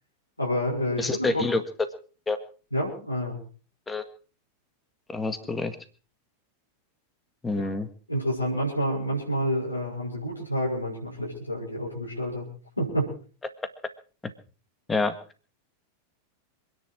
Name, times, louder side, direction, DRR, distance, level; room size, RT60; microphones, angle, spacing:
voice 1, 0.4-1.5 2.7-3.4 7.6-7.7 8.1-12.5 12.8-13.1, equal, 85° left, -4 dB, 6.3 m, -28 dB
voice 2, 1.0-1.6 2.3-2.4 3.9-4.0 5.1-5.8 7.4-7.9 14.9-15.1, left 3 dB, 10° left, 10 dB, 2.0 m, -27 dB
27.0 x 10.5 x 4.7 m, 0.39 s
figure-of-eight pair, 90°, 0 cm